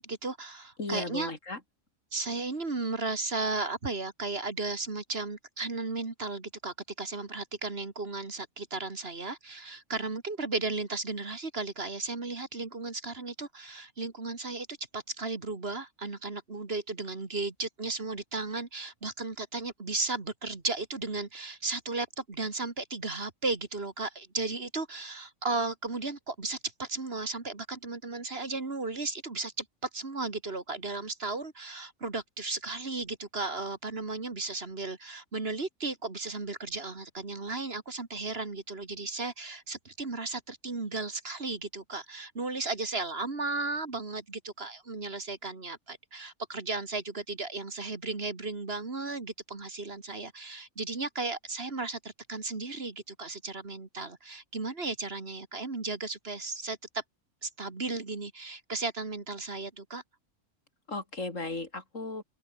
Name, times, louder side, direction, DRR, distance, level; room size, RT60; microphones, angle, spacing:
voice 1, 0.0-1.3 2.1-57.0 57.4-60.0, right 3 dB, 50° right, 2.5 m, -35 dB
voice 2, 0.8-1.6 60.9-62.2, left 2 dB, 70° left, 4.4 m, -35 dB
open air
omnidirectional pair, 1.4 m